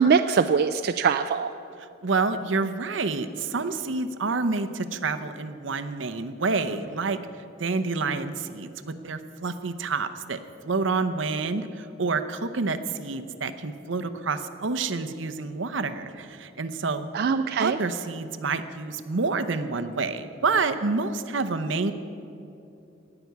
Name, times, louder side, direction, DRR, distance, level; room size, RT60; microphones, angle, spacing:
voice 1, 0.0-1.5 17.1-17.8, right 6 dB, 55° right, 9 dB, 0.4 m, -22 dB
voice 2, 2.0-7.2 7.6-8.7 9.0-17.1 17.6-21.9, right 4 dB, 80° right, 10 dB, 0.8 m, -28 dB
17.5 x 6.0 x 9.2 m, 2.8 s
head